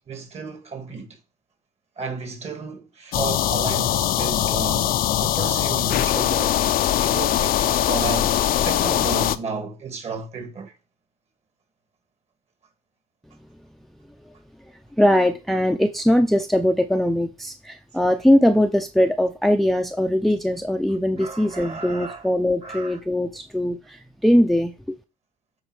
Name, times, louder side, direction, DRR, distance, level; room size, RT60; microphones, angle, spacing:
voice 1, 0.1-1.2 2.0-10.7 21.2-22.3 22.6-23.0, right 4 dB, 40° right, 2.0 m, -33 dB
friend face, 3.1-9.4, left 12 dB, 60° left, 0.5 m, -21 dB
voice 2, 15.0-25.0, left 1 dB, ahead, 0.6 m, -21 dB
8.8 x 3.9 x 4.9 m
cardioid pair, 110°, 17 cm